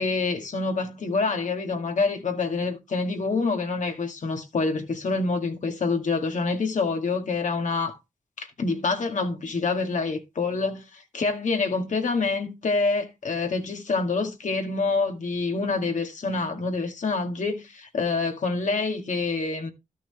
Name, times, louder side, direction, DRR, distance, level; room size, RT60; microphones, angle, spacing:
voice 1, 0.0-8.0 8.4-19.7, left 3 dB, 70° left, 2.0 m, -26 dB
13.5 x 6.1 x 3.3 m
cardioid pair, 70°, 13 cm